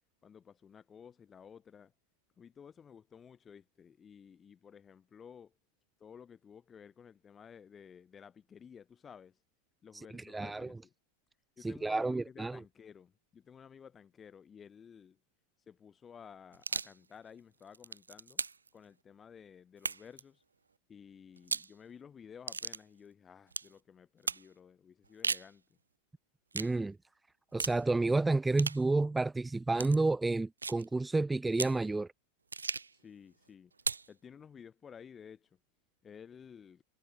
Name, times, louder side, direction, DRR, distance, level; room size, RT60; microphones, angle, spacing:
voice 1, 0.2-1.9 2.4-5.5 6.0-9.4 9.8-10.9 11.6-15.2 15.7-18.4 18.7-20.4 20.9-25.6 32.9-33.7 34.1-35.6 36.0-36.8, left 7 dB, 20° left, 1.8 m, -54 dB
voice 2, 10.1-10.7 11.6-12.6 26.5-27.0 27.5-32.1, right 3 dB, 10° right, 0.4 m, -30 dB
sound 1, 16.5-17.0 17.6-18.7 19.8-20.2 21.4-21.7 22.5-22.8 23.5-23.7 24.3-24.5 25.0-25.5 26.5-26.7 27.6-27.8 28.6-28.8 29.7-30.0 30.6-30.9 31.5-31.8 32.5-33.0 33.8-34.1, right 4 dB, 75° right, 0.5 m, -36 dB
figure-of-eight pair, 90°, 0 cm